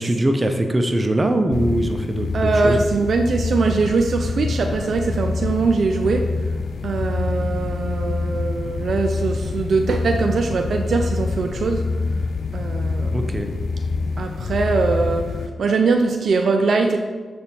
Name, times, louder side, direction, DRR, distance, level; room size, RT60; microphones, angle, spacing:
voice 1, 0.0-2.8 13.1-13.5, right 1 dB, 25° right, 6 dB, 0.7 m, -21 dB
sound 1, 1.5-15.5, left 4 dB, 75° left, 0.4 m, -26 dB
voice 2, 2.3-6.2 6.8-11.8 12.5-13.3 14.2-17.0, right 4 dB, 65° right, 4 dB, 0.4 m, -21 dB
6.9 x 3.4 x 4.3 m, 1.5 s
cardioid pair, 55°, 0 cm